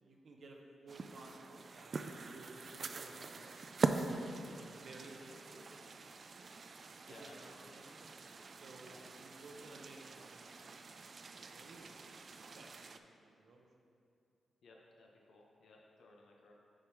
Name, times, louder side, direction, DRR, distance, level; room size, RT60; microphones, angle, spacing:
voice 1, 0.0-3.7 4.5-5.8 7.1-8.1 8.6-10.7 11.3-13.7, right 2 dB, 60° right, 1 dB, 0.9 m, -56 dB
sound 1, 0.9-13.0, right 4 dB, 45° right, 0.3 m, -43 dB
voice 2, 7.0-7.8 8.8-9.4 14.6-16.5, left 2 dB, 75° left, -1 dB, 0.9 m, -60 dB
10.0 x 3.8 x 4.5 m, 2.6 s
cardioid pair, 115°, 0 cm